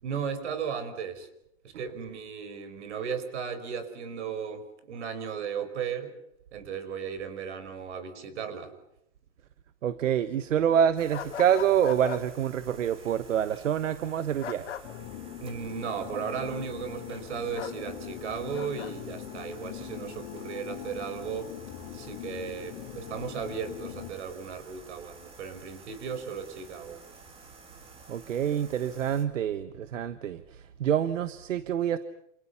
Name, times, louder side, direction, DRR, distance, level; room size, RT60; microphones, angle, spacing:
voice 1, 0.0-1.3 1.6-6.1 6.5-8.7 15.4-21.5 21.9-27.0, right 7 dB, 65° right, 5.2 m, -36 dB
voice 2, 9.8-14.6 28.1-32.0, right 9 dB, 85° right, 1.4 m, -27 dB
sound 1, 11.0-29.2, right 3 dB, 15° right, 2.9 m, -52 dB
sound 2, 11.1-12.2 14.4-14.8 17.5-17.8 18.5-18.9, left 9 dB, 70° left, 2.9 m, -37 dB
sound 3, 14.8-24.1, left 11 dB, 25° left, 3.3 m, -41 dB
28.5 x 28.0 x 5.8 m
hypercardioid pair, 165°, 37 cm